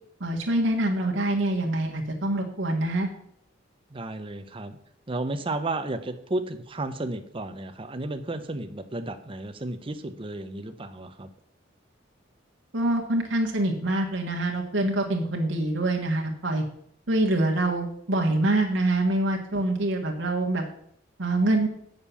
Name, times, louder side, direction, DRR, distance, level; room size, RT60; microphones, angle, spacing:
voice 1, 0.2-3.1 12.7-16.6 17.1-20.6 21.2-21.7, right 1 dB, 75° right, 1 dB, 1.4 m, -25 dB
voice 2, 3.9-4.8 5.1-11.3, right 2 dB, 30° right, 8 dB, 0.8 m, -33 dB
7.3 x 6.6 x 7.0 m, 0.69 s
head